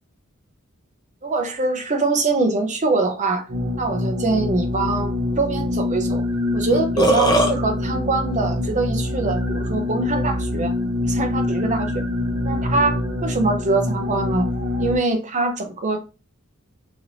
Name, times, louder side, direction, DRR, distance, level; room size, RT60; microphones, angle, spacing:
voice 1, 1.2-3.4 3.8-6.2 6.5-10.7 11.0-12.0 12.4-14.5 14.8-16.0, right 3 dB, 35° right, 0.6 m, -23 dB
sound 1, 3.5-15.0, left 1 dB, 70° right, 0.9 m, -25 dB
Burping eructation, 6.3-6.4 6.7-7.5, right 1 dB, 20° left, 0.5 m, -17 dB
3.2 x 2.9 x 2.6 m
head